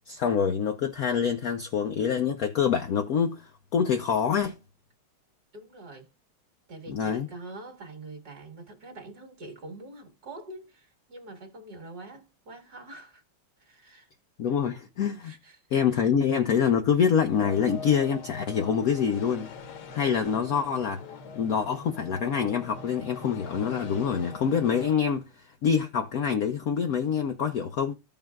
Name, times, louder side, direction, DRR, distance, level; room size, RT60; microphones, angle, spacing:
voice 1, 0.1-4.6 6.9-7.3 14.4-15.3 15.7-19.5 19.9-21.0 21.4-27.9, left 7 dB, 85° left, 0.7 m, -26 dB
voice 2, 5.5-6.1 6.7-13.2 13.6-14.1 15.2-16.1, right 2 dB, 50° right, 2.3 m, -45 dB
sound 1, 17.3-25.0, left 5 dB, 60° left, 1.2 m, -42 dB
15.0 x 5.4 x 2.3 m
omnidirectional pair, 2.3 m